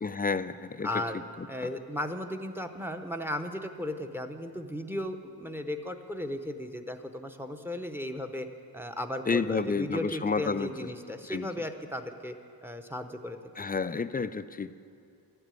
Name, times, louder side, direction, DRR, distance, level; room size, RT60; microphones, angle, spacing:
voice 1, 0.0-0.9 1.4-1.5 9.3-10.9 11.2-11.5 13.6-14.8, left 4 dB, 25° left, 12 dB, 0.3 m, -30 dB
voice 2, 0.8-1.2 1.5-8.5 8.7-12.4 12.6-13.4, left 1 dB, 5° right, 7 dB, 0.8 m, -35 dB
12.5 x 8.0 x 9.1 m, 2.5 s
cardioid pair, 85°, 42 cm